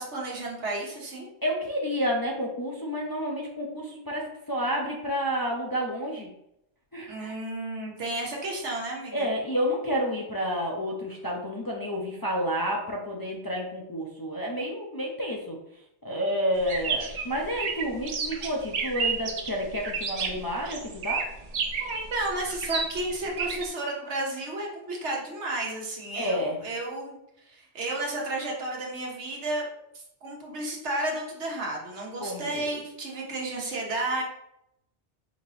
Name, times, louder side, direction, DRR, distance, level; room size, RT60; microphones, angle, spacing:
voice 1, 0.0-1.3 7.1-9.3 21.8-27.1 27.5-29.7 29.9-34.2, right 2 dB, 90° right, -2 dB, 1.4 m, -32 dB
voice 2, 1.4-6.3 6.9-7.3 9.1-15.6 16.0-21.2 26.2-26.6 32.2-32.5, equal, 30° left, -2 dB, 0.4 m, -30 dB
sound 1, 16.6-23.7, right 5 dB, 55° right, 0.4 m, -31 dB
5.0 x 2.9 x 3.1 m, 0.80 s
omnidirectional pair, 1.1 m